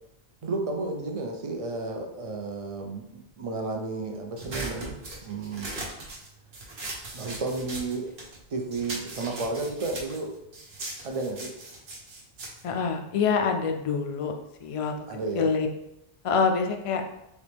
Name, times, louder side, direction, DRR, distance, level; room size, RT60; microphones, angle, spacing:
voice 1, 0.4-5.8 7.1-8.1 8.5-10.3 11.0-11.5 15.1-15.5, right 3 dB, 40° right, 2 dB, 0.6 m, -32 dB
sound 1, 4.4-8.4 8.7-13.5, right 2 dB, 75° right, 1.2 m, -39 dB
voice 2, 12.6-14.3 14.6-14.9 15.3-15.7 16.2-17.0, left 5 dB, 55° left, 5 dB, 0.4 m, -25 dB
4.1 x 3.0 x 3.4 m, 0.83 s
omnidirectional pair, 1.1 m